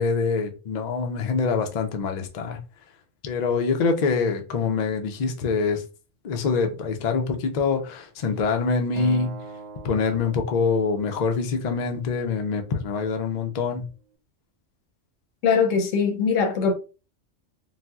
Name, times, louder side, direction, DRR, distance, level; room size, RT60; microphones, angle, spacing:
voice 1, 0.0-2.6 3.2-5.8 6.2-9.4 9.8-13.9, left 5 dB, 55° left, 0.4 m, -25 dB
Acoustic guitar, 9.0-11.3, right 2 dB, 80° right, 0.3 m, -39 dB
voice 2, 15.4-16.7, left 5 dB, 85° left, 1.0 m, -21 dB
4.0 x 2.1 x 2.3 m
omnidirectional pair, 1.3 m